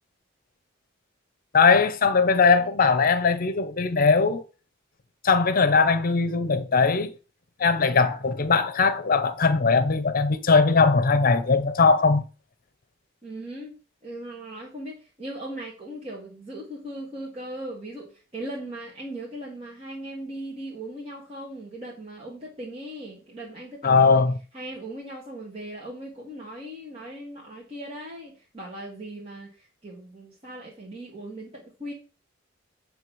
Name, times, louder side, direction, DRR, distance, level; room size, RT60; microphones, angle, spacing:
voice 1, 1.5-4.4 5.2-7.1 7.6-12.2 23.8-24.4, left 4 dB, 50° left, 0.8 m, -20 dB
voice 2, 13.2-13.7 14.0-24.2 24.5-29.6 29.8-31.9, right 1 dB, 30° right, 1.8 m, -38 dB
8.6 x 3.3 x 6.2 m
head